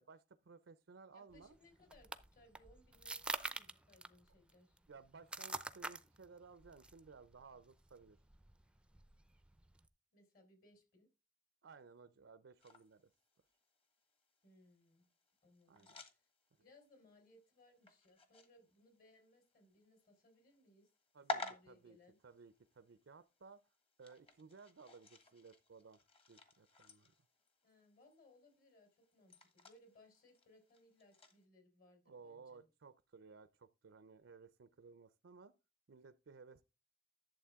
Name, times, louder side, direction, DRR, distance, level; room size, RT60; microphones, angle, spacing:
voice 1, 0.1-1.6 4.9-8.2 11.6-13.1 15.7-15.9 21.1-22.0 22.2-23.6 24.0-26.0 26.3-27.1 32.1-35.5 35.9-36.6, right 4 dB, 80° right, 0.5 m, -58 dB
voice 2, 1.1-4.8 10.1-11.1 14.4-15.1 15.4-16.3 16.6-20.9 21.3-22.2 27.6-32.7, left 2 dB, 55° left, 4.0 m, -67 dB
sound 1, 1.3-9.9, right 2 dB, 5° right, 0.5 m, -48 dB
sound 2, 12.6-31.4, left 2 dB, 30° left, 1.5 m, -53 dB
11.5 x 7.3 x 3.6 m
head